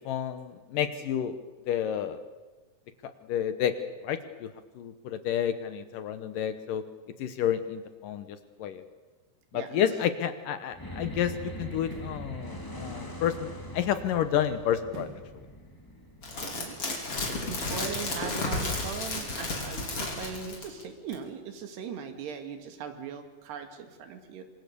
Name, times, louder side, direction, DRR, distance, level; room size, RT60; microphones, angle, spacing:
voice 1, 0.1-1.4 1.7-2.2 3.3-3.7 4.0-4.5 4.8-6.8 7.2-8.8 9.5-13.5 13.7-15.1, left 9 dB, 70° left, 10 dB, 2.3 m, -30 dB
sound 1, 10.7-17.3, equal, 5° left, 2.4 m, -42 dB
sound 2, 11.9-12.3 14.9-15.4 15.8-15.9, right 4 dB, 55° right, 4.8 m, -45 dB
sound 3, 16.2-20.8 21.1-21.2, left 2 dB, 35° left, 5.3 m, -32 dB
voice 2, 16.4-24.4, right 6 dB, 85° right, 6 dB, 4.3 m, -40 dB
27.0 x 25.5 x 6.9 m, 1.2 s
omnidirectional pair, 4.6 m